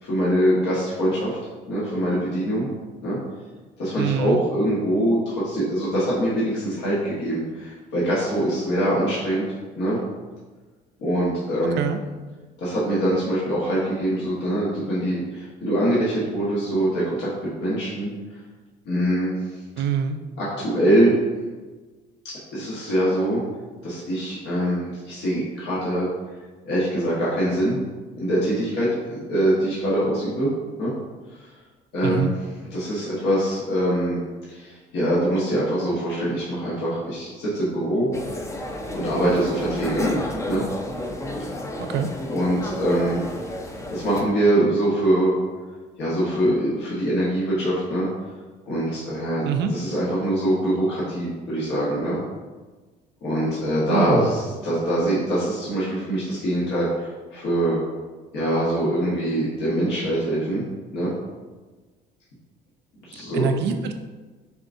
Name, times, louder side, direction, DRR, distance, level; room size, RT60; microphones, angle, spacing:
voice 1, 0.0-1.4 1.7-2.7 3.0-3.2 3.8-9.4 9.8-10.0 11.0-11.8 12.6-18.4 18.8-19.6 20.4-21.1 22.5-23.4 23.8-26.1 26.6-27.8 28.1-30.5 30.8-30.9 31.9-32.3 32.7-34.2 34.5-38.1 38.9-40.6 42.3-43.2 43.9-45.4 46.0-48.1 48.7-49.4 49.7-52.2 53.2-57.8 58.3-60.6 60.9-61.1 63.0-63.5, right 1 dB, 70° left, -7 dB, 1.3 m, -23 dB
voice 2, 4.0-4.4 11.8-12.0 19.8-20.2 32.0-32.3 41.8-42.1 49.4-49.7 53.9-54.3 63.1-63.9, right 7 dB, 65° right, 7 dB, 0.5 m, -25 dB
sound 1, 38.1-44.2, left 1 dB, 15° left, 0.6 m, -31 dB
6.9 x 2.5 x 2.6 m, 1.3 s
supercardioid pair, 75°, 19 cm